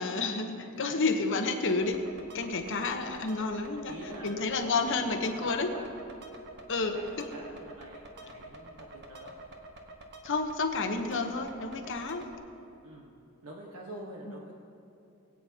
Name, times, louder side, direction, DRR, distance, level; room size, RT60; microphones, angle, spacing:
voice 1, 0.0-2.0 2.3-3.9 4.2-5.7 6.7-7.3 10.2-12.3, left 3 dB, 60° left, 5 dB, 0.9 m, -30 dB
voice 2, 0.5-1.0 3.8-4.3 4.6-5.9 6.8-9.3 12.8-13.1 13.4-14.6, right 1 dB, 80° right, -3 dB, 1.2 m, -46 dB
sound 1, 1.7-12.4, right 1 dB, 50° right, 1.2 m, -49 dB
20.5 x 8.8 x 2.8 m, 2.8 s
head